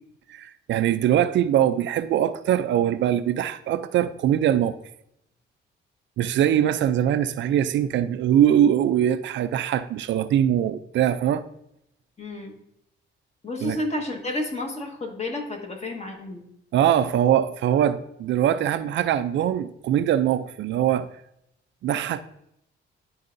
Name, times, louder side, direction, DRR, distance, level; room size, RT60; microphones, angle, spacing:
voice 1, 0.3-4.8 6.2-11.4 13.6-13.8 16.7-21.1 21.8-22.2, right 10 dB, 70° right, 0.4 m, -22 dB
voice 2, 12.2-12.5 13.4-16.4, left 2 dB, 35° left, 1.6 m, -31 dB
11.0 x 4.7 x 2.6 m
cardioid pair, 90°, 20 cm